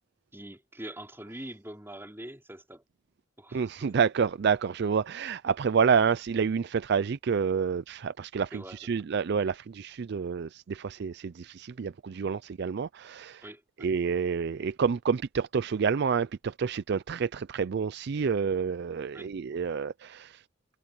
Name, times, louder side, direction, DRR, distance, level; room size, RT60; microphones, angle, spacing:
voice 1, 0.3-2.8 3.4-3.9 5.8-6.0 8.5-9.0 13.4-13.9 19.1-19.3, right 1 dB, 10° right, 3.7 m, -44 dB
voice 2, 3.5-13.4 13.8-20.4, right 6 dB, 55° right, 0.4 m, -28 dB
head